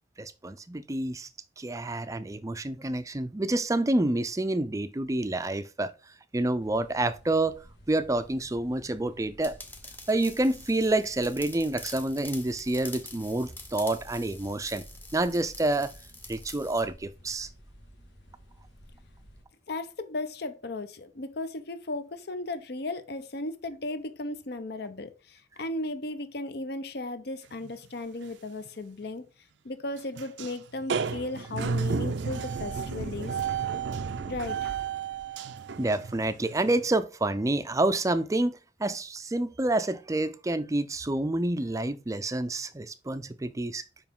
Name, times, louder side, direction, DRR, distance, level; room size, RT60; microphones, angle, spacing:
voice 1, 0.2-1.3 1.6-5.9 6.3-7.6 7.9-9.6 10.1-14.9 15.1-15.9 16.3-17.5 35.8-44.0, right 2 dB, 15° right, 0.4 m, -28 dB
sound 1, 6.6-19.4, equal, 90° left, 1.8 m, -53 dB
sound 2, 9.4-16.9, left 2 dB, 10° left, 0.7 m, -46 dB
voice 2, 19.7-29.3 29.6-33.4 34.3-34.8, left 2 dB, 60° left, 0.7 m, -36 dB
sound 3, 27.6-27.9 28.2-28.3 28.7-28.8 30.2-30.6 30.8-36.9, right 5 dB, 75° right, 0.5 m, -32 dB
7.2 x 5.2 x 3.7 m
head